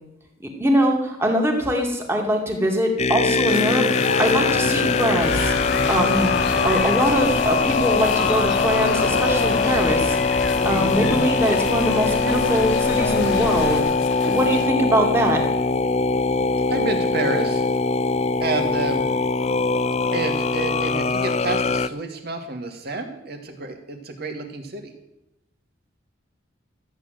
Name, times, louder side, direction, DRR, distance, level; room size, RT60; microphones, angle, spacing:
voice 1, 0.6-3.9 4.2-5.5 5.9-6.3 6.6-10.2 10.6-13.8 14.2-15.4, equal, 15° right, 1 dB, 2.4 m, -22 dB
sound 1, 3.0-21.9, left 4 dB, 35° left, 0.5 m, -22 dB
sound 2, 3.5-14.7, left 4 dB, 80° left, 1.0 m, -29 dB
sound 3, 5.2-13.8, left 3 dB, 60° left, 1.5 m, -32 dB
voice 2, 16.7-17.6 18.4-19.0 20.1-24.9, right 3 dB, 55° right, 4 dB, 2.2 m, -29 dB
14.0 x 9.0 x 7.8 m, 0.88 s
head